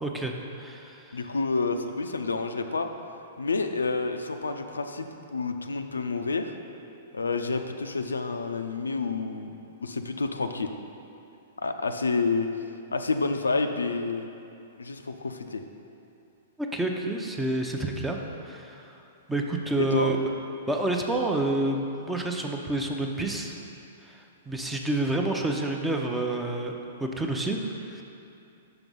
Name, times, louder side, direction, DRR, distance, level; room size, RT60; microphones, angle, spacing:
voice 1, 0.0-1.2 16.6-19.0 19.3-20.2 20.7-23.6 24.0-26.7 27.0-28.0, right 2 dB, 10° right, 1 dB, 0.6 m, -29 dB
voice 2, 1.1-2.9 3.4-6.5 7.1-9.5 9.8-10.7 11.6-12.5 12.9-14.3 14.8-15.6 19.8-20.1, left 4 dB, 80° left, 6 dB, 0.4 m, -29 dB
5.9 x 5.2 x 5.4 m, 2.7 s
figure-of-eight pair, 110°, 0 cm